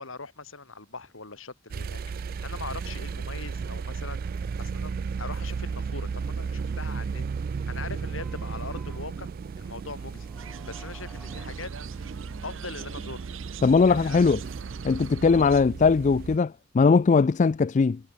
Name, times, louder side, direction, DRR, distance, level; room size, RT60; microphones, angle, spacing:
voice 1, 0.0-7.2 7.5-9.3 9.6-10.3 10.6-11.7 12.4-13.3 13.8-14.2 15.3-15.5, left 3 dB, 80° left, 3.8 m, -41 dB
sound 1, 1.7-16.4, right 5 dB, 45° right, 0.3 m, -34 dB
sound 2, 8.1-15.9, equal, ahead, 2.2 m, -53 dB
sound 3, 10.3-15.6, right 6 dB, 75° right, 1.9 m, -44 dB
voice 2, 13.6-14.4 14.8-18.0, left 4 dB, 35° left, 0.3 m, -20 dB
head